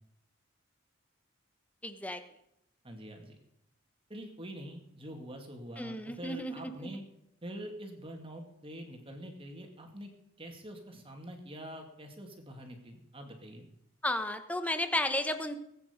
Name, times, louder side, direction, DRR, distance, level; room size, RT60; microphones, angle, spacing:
voice 1, 1.8-2.2 5.8-6.9 14.0-15.6, left 1 dB, 5° left, 9 dB, 1.0 m, -33 dB
voice 2, 2.8-3.4 4.1-7.0 7.4-10.1 10.4-13.7, equal, 25° right, 4 dB, 2.3 m, -45 dB
20.0 x 9.1 x 5.2 m, 0.81 s
head